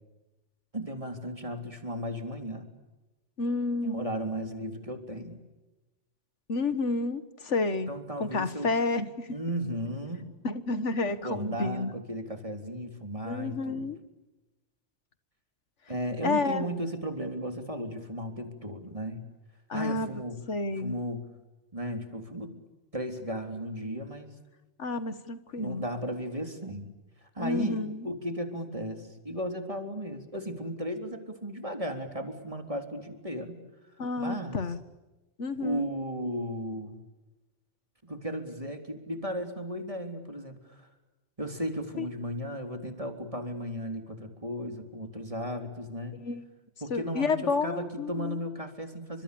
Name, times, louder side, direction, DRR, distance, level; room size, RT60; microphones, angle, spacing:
voice 1, 0.7-2.7 3.8-5.4 7.9-8.7 9.3-10.3 11.2-13.9 15.9-19.2 19.7-20.4 20.8-21.3 21.7-22.5 22.9-24.3 25.6-26.9 27.2-33.6 34.2-34.6 35.6-37.0 38.0-40.9 41.4-46.2 46.8-49.2, equal, 30° right, 5 dB, 3.7 m, -35 dB
voice 2, 3.4-4.2 6.5-7.9 8.2-9.3 10.4-12.0 13.2-14.0 16.2-16.6 19.7-20.2 20.5-21.0 24.8-25.9 27.4-28.1 34.0-34.8 35.4-35.9 42.0-42.1 46.1-46.4 46.9-48.4, left 3 dB, 80° left, 11 dB, 1.9 m, -30 dB
30.0 x 26.5 x 7.0 m, 1.1 s
omnidirectional pair, 1.2 m